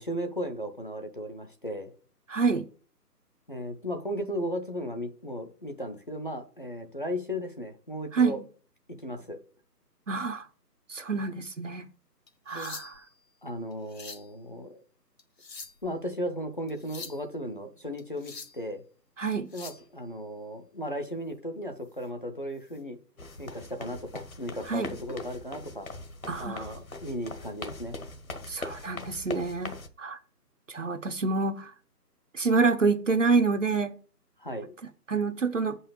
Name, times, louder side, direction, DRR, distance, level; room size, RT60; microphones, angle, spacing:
voice 1, 0.0-1.9 3.5-8.4 9.0-9.4 12.5-12.8 13.4-14.8 15.8-18.8 19.5-23.0 23.4-25.9 26.4-28.0 34.4-34.8, equal, 30° left, 0.8 m, -36 dB
voice 2, 2.3-2.7 8.1-8.4 10.1-10.4 10.9-11.9 12.5-12.9 19.2-19.5 24.7-25.0 26.3-26.7 28.5-29.7 30.0-30.2 30.7-31.7 32.3-33.9 35.1-35.8, right 4 dB, 50° right, 0.9 m, -27 dB
sound 1, 12.3-13.2 13.7-14.3 15.2-15.9 16.7-17.2 18.0-18.6 19.3-19.9 21.9-22.1 22.6-22.8 23.3-23.4 24.6-25.2 26.3-26.5, left 4 dB, 90° left, 2.2 m, -45 dB
sound 2, 23.2-29.9, left 3 dB, 60° left, 1.5 m, -41 dB
7.7 x 5.6 x 7.4 m
hypercardioid pair, 180°, 48 cm